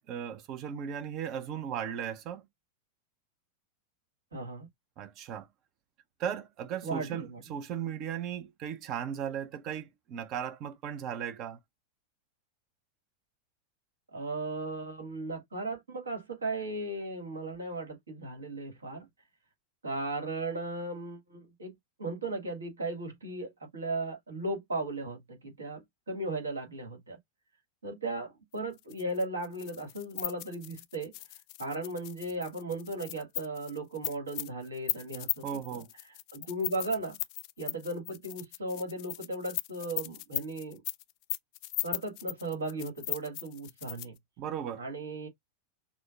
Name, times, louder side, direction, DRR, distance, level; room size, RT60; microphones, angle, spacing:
voice 1, 0.0-2.5 5.0-5.5 6.2-11.6 35.1-35.9 44.4-44.8, right 8 dB, 35° right, 0.7 m, -37 dB
voice 2, 4.3-4.7 6.8-7.4 14.1-19.1 19.8-27.2 27.8-31.1 31.6-35.4 35.7-35.8 36.3-37.2 37.6-40.8 41.8-44.1 44.8-45.3, right 2 dB, 70° right, 1.8 m, -36 dB
sound 1, 28.8-44.2, left 21 dB, 45° left, 0.4 m, -38 dB
6.2 x 2.2 x 2.3 m
figure-of-eight pair, 90°, 0 cm